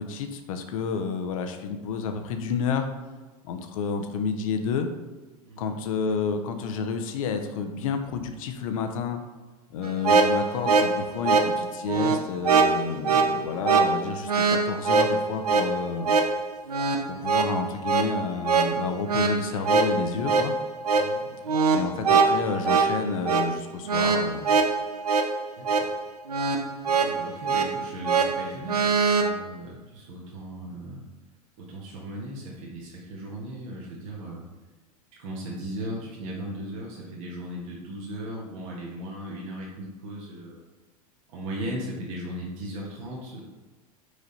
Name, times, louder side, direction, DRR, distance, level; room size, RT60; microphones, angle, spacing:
voice 1, 0.0-2.9 3.4-4.9 5.6-9.2 9.7-16.1 17.1-20.5 21.7-24.6, left 5 dB, 60° left, 7 dB, 0.8 m, -30 dB
voice 2, 5.4-6.2 16.9-17.4 20.9-21.5 25.6-25.7 26.9-31.0 31.6-34.4 35.2-40.6 41.3-43.4, right 1 dB, 55° right, -4 dB, 1.5 m, -37 dB
sound 1, 9.8-29.3, right 4 dB, 80° right, 0.6 m, -23 dB
5.1 x 5.0 x 4.1 m, 1.3 s
figure-of-eight pair, 85°, 20 cm